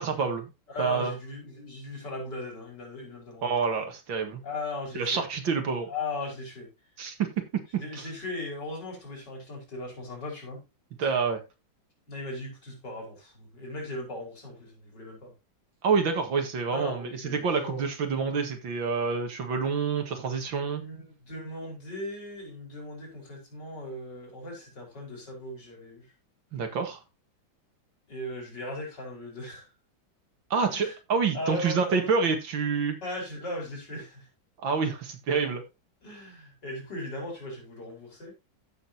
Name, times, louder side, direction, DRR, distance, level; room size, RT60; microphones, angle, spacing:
voice 1, 0.0-0.5 0.8-1.1 3.4-4.4 4.9-5.9 7.0-7.8 11.0-11.4 15.8-20.8 26.5-27.0 30.5-33.0 34.6-35.6, right 5 dB, 85° right, 2.5 m, -27 dB
voice 2, 0.7-3.6 4.4-5.3 5.9-6.7 7.7-10.6 11.0-11.1 12.1-15.3 16.7-17.8 20.8-26.1 28.1-29.7 30.7-31.0 31.3-32.1 33.0-34.3 36.0-38.3, left 2 dB, 60° left, 5.8 m, -38 dB
15.0 x 6.3 x 2.9 m
omnidirectional pair, 2.1 m